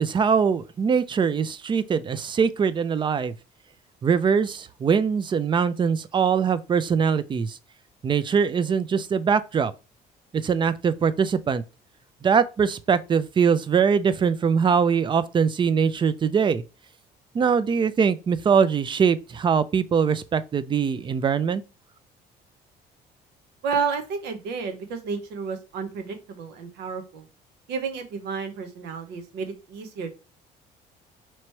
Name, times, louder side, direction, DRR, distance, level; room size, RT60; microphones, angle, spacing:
voice 1, 0.0-3.3 4.0-7.6 8.0-9.7 10.3-11.6 12.2-16.6 17.3-21.6, right 6 dB, 30° right, 0.4 m, -22 dB
voice 2, 23.6-27.3 27.7-30.1, right 5 dB, 85° right, 0.9 m, -31 dB
3.0 x 3.0 x 4.4 m
cardioid pair, 110°, 17 cm